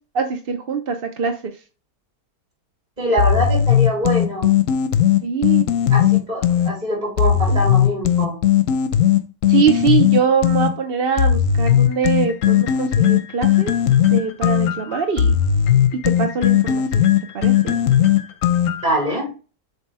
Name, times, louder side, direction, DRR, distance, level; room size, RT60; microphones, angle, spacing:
voice 1, 0.1-1.5 5.2-5.7 7.5-7.6 9.5-13.7 14.1-15.4 16.2-17.1 17.3-17.8, right 6 dB, 50° right, 5 dB, 0.7 m, -22 dB
voice 2, 3.0-4.5 5.9-8.4 18.8-19.3, equal, 25° right, -3 dB, 4.0 m, -23 dB
sound 1, 3.2-6.7 7.2-10.7 11.2-19.0, left 10 dB, 60° left, 1.0 m, -17 dB
7.5 x 3.3 x 4.8 m, 0.33 s
omnidirectional pair, 1.8 m